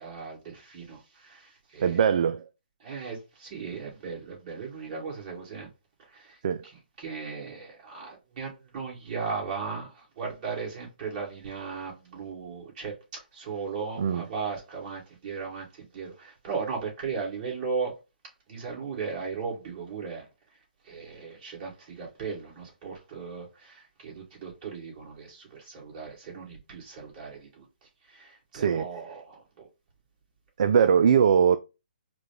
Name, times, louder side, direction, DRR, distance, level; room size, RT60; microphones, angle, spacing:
voice 1, 0.0-1.4 1.7-2.0 2.8-5.7 6.1-6.2 7.0-12.9 13.3-15.6 15.9-17.9 18.5-20.2 20.9-27.6 28.2-29.4, right 5 dB, 30° right, 2.2 m, -36 dB
voice 2, 1.8-2.5 6.4-6.7 14.0-14.2 28.5-29.0 30.6-31.6, right 7 dB, 50° right, 0.3 m, -21 dB
4.9 x 2.3 x 3.4 m
hypercardioid pair, 145°, 5 cm